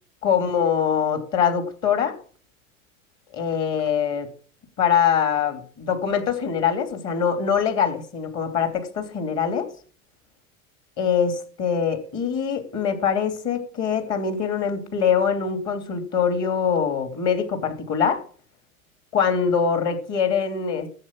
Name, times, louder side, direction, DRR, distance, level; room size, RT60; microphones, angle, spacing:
voice 1, 0.2-2.2 3.3-4.3 4.8-9.7 11.0-18.2 19.1-20.9, left 7 dB, 40° left, 7 dB, 3.1 m, -23 dB
14.0 x 7.6 x 6.0 m, 0.42 s
figure-of-eight pair, 85°, 42 cm